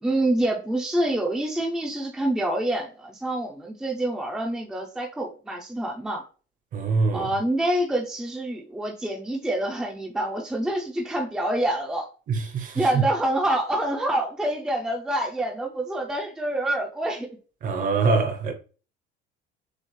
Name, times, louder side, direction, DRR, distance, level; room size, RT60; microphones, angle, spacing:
voice 1, 0.0-6.2 7.1-12.1 12.7-17.3, right 1 dB, 5° right, 0.5 m, -26 dB
voice 2, 6.7-7.3 12.3-13.0 17.6-18.5, right 4 dB, 40° right, 0.9 m, -24 dB
6.4 x 2.4 x 3.2 m
cardioid pair, 150°, 21 cm